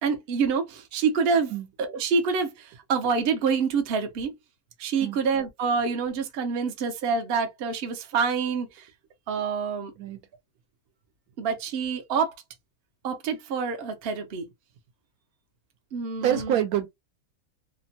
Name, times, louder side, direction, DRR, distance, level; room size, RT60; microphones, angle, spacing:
voice 1, 0.0-1.5 1.8-4.3 4.8-8.9 9.3-9.9 11.4-12.3 13.0-14.5 15.9-16.6, right 5 dB, 60° right, 0.7 m, -27 dB
voice 2, 16.2-16.9, right 10 dB, 75° right, 1.1 m, -26 dB
2.9 x 2.1 x 2.7 m
omnidirectional pair, 1.7 m